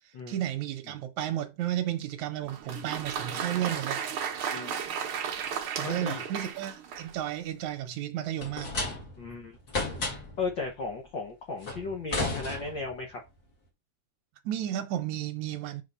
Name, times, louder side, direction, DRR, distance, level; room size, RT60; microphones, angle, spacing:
voice 1, 0.3-4.0 5.8-8.7 14.5-15.8, right 12 dB, 70° right, 1.9 m, -33 dB
Applause, 2.4-7.3, right 7 dB, 90° right, 1.1 m, -34 dB
voice 2, 5.8-6.2 9.2-10.0 10.4-13.2, left 3 dB, 85° left, 1.0 m, -36 dB
sound 1, 8.4-9.3 9.7-10.4 11.6-13.0, left 2 dB, 35° left, 1.9 m, -33 dB
5.7 x 4.1 x 5.4 m
omnidirectional pair, 4.1 m